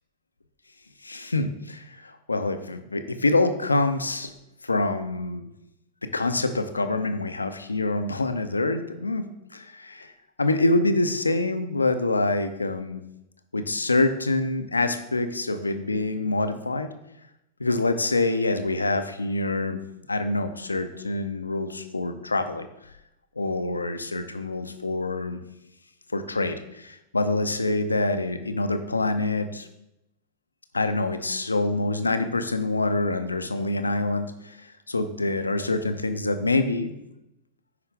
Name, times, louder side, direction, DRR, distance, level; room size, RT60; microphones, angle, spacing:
voice 1, 1.0-4.3 4.6-5.4 6.1-9.2 9.5-10.1 10.4-13.0 13.5-16.9 17.6-19.8 20.1-22.7 23.4-25.4 26.1-29.7 30.7-34.6 34.9-36.9, left 2 dB, 80° left, 9 dB, 0.6 m, -26 dB
9.8 x 4.9 x 3.4 m, 0.86 s
figure-of-eight pair, 90°, 0 cm